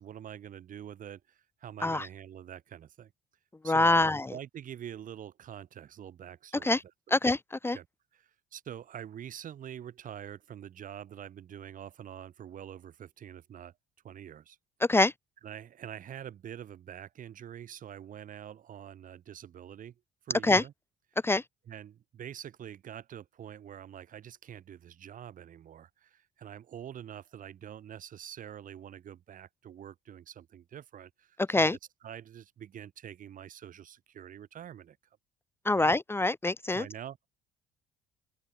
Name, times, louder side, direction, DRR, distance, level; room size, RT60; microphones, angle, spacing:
voice 1, 0.0-3.1 3.6-6.8 7.2-7.3 7.7-7.9 8.1-13.7 14.0-14.6 15.4-19.9 20.2-20.7 21.7-31.7 32.0-35.0 35.8-35.9 36.7-37.3, right 10 dB, 50° right, 3.2 m, -45 dB
voice 2, 3.6-4.3 6.6-6.8 7.1-7.8 14.9-15.1 20.4-20.6 21.2-21.4 31.5-31.8 35.6-36.8, left 2 dB, 15° left, 1.0 m, -25 dB
open air
cardioid pair, 110°, 17 cm